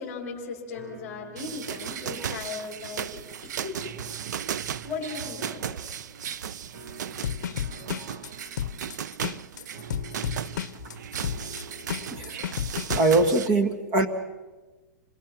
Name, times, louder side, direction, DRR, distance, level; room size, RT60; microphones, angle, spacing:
voice 1, 0.0-4.0 4.8-6.0, left 4 dB, 15° left, -1 dB, 3.4 m, -37 dB
sound 1, 0.7-12.7, right 4 dB, 50° right, 3.4 m, -48 dB
sound 2, 1.4-13.5, right 8 dB, 75° right, 0.6 m, -36 dB
sound 3, 7.2-13.0, left 10 dB, 80° left, 0.6 m, -32 dB
voice 2, 12.1-12.5 12.9-14.1, right 2 dB, 25° right, 7 dB, 1.7 m, -22 dB
28.0 x 21.0 x 5.9 m, 1.2 s
supercardioid pair, 175°, 10 cm